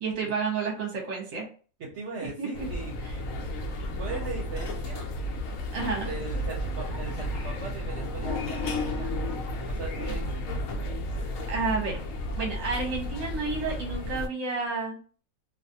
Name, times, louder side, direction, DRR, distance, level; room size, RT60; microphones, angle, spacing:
voice 1, 0.0-1.5 2.2-2.7 5.7-6.1 11.5-12.0 12.4-15.0, right 4 dB, 35° right, 0 dB, 0.8 m, -30 dB
voice 2, 1.8-2.9 4.0-5.1 5.8-9.1 9.7-10.6, right 4 dB, 65° right, -3 dB, 0.8 m, -39 dB
sound 1, 2.5-14.3, left 1 dB, 75° left, 1.0 m, -32 dB
2.5 x 2.3 x 2.6 m, 0.39 s
omnidirectional pair, 1.4 m